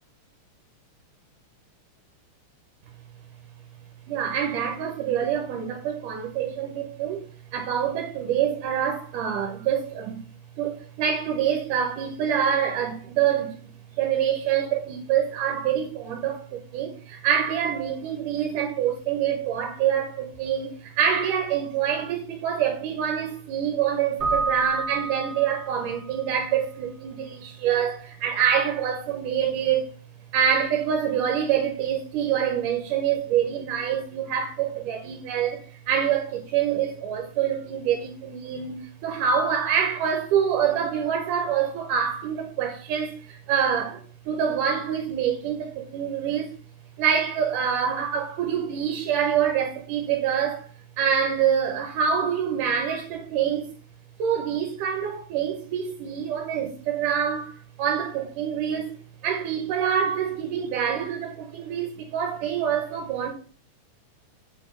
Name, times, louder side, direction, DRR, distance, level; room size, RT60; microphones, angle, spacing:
voice 1, 4.1-7.3 7.5-10.2 10.6-29.9 30.3-46.6 47.0-50.7 51.0-53.7 54.2-59.0 59.2-63.3, right 8 dB, 85° right, 2.5 m, -26 dB
Keyboard (musical), 24.2-26.0, right 3 dB, 15° right, 1.7 m, -29 dB
8.0 x 3.7 x 4.5 m
omnidirectional pair, 3.6 m